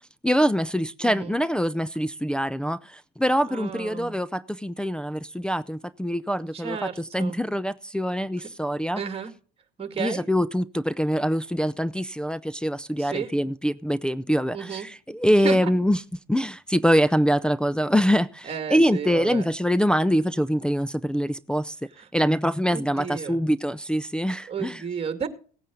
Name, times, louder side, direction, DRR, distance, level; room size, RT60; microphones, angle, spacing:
voice 1, 0.2-6.8 7.1-9.0 10.0-16.0 16.3-21.8 22.1-24.8, equal, 5° left, 0.5 m, -24 dB
voice 2, 1.0-1.3 3.5-4.2 6.5-7.4 8.4-8.5 9.0-9.3 9.8-10.3 13.0-13.3 14.5-14.9 15.4-15.7 18.4-19.5 22.0-22.1 22.7-23.4 24.5-25.3, right 6 dB, 30° right, 2.2 m, -32 dB
17.0 x 9.2 x 3.8 m
supercardioid pair, 90°, 21 cm